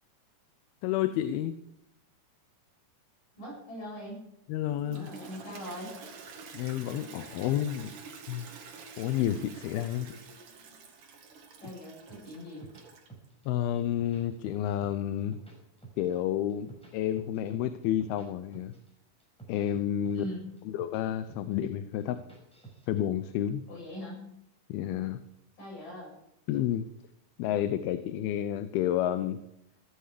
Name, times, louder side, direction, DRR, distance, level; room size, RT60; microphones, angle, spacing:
voice 1, 0.8-1.5 4.5-5.1 6.5-7.9 8.3-8.5 9.0-10.2 13.5-15.3 16.0-18.7 19.5-20.2 20.7-22.2 22.9-23.6 24.7-25.2 26.5-26.9 27.4-29.4, left 11 dB, 85° left, 11 dB, 2.6 m, -30 dB
voice 2, 3.4-4.2 4.9-6.0 11.6-12.6 20.1-20.4 23.7-24.2 25.6-26.1, equal, 60° left, -3 dB, 9.5 m, -41 dB
Toilet flush, 4.7-13.3, right 5 dB, 60° right, 3.3 m, -48 dB
sound 1, 12.1-13.5 13.8-14.9 15.2-16.2 16.5-18.3 18.5-18.9 19.2-21.0 21.3-21.7 22.0-23.1, right 5 dB, ahead, 5.5 m, -50 dB
16.0 x 14.0 x 4.9 m, 0.82 s
omnidirectional pair, 4.3 m